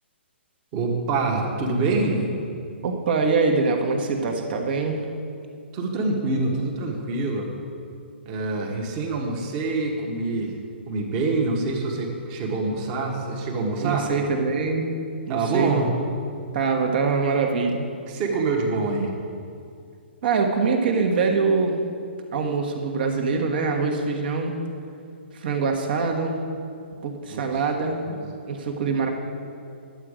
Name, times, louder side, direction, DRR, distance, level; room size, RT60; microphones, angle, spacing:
voice 1, 0.7-2.3 5.7-7.5 8.2-10.6 10.9-14.1 15.3-15.9 18.1-19.1 27.2-27.6 28.0-28.2, right 3 dB, 35° right, 1 dB, 1.5 m, -26 dB
voice 2, 2.8-5.0 13.8-14.9 15.3-16.0 16.5-17.8 20.2-21.8 22.3-24.5 25.3-26.4 27.0-28.0 28.5-29.1, right 4 dB, 55° right, 2 dB, 1.5 m, -24 dB
11.0 x 8.0 x 5.0 m, 2.4 s
figure-of-eight pair, 125°, 6 cm